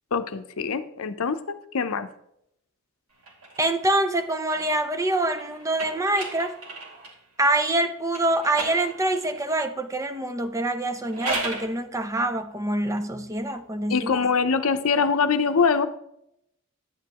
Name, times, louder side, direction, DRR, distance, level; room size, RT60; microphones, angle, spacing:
voice 1, 0.1-2.1 13.9-15.9, left 5 dB, 70° left, 0.7 m, -23 dB
sound 1, 3.2-7.2 8.1-9.5 10.9-11.7, right 2 dB, 80° right, 2.3 m, -36 dB
voice 2, 3.6-6.5 7.4-14.2, right 1 dB, 15° right, 0.6 m, -25 dB
10.5 x 8.4 x 3.0 m
head